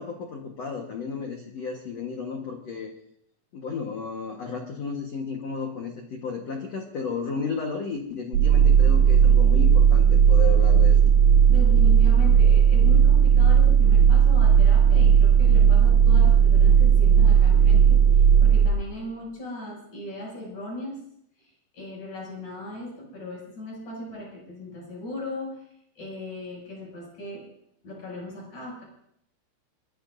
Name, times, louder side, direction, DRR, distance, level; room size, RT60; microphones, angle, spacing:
voice 1, 0.0-2.9 3.5-11.0, left 5 dB, 70° left, 1 dB, 1.5 m, -33 dB
sound 1, 8.3-18.7, right 8 dB, 75° right, 2.9 m, -16 dB
voice 2, 11.5-21.0 21.4-25.6 26.0-27.4 27.8-28.8, left 1 dB, 40° left, -2 dB, 8.3 m, -38 dB
24.5 x 18.5 x 2.7 m, 0.72 s
omnidirectional pair, 5.3 m